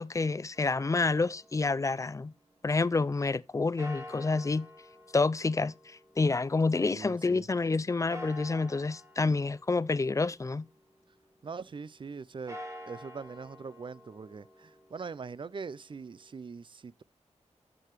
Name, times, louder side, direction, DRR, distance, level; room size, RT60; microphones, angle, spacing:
voice 1, 0.0-2.3 2.6-4.7 5.1-10.7, left 3 dB, 25° left, 0.4 m, -28 dB
sound 1, 0.5-2.6 3.8-7.1 8.1-11.1 12.3-16.3, left 1 dB, 25° right, 1.6 m, -49 dB
voice 2, 6.9-7.5 11.4-12.6 12.9-17.0, right 5 dB, 45° right, 0.4 m, -42 dB
9.8 x 6.7 x 3.0 m
cardioid pair, 65°, 12 cm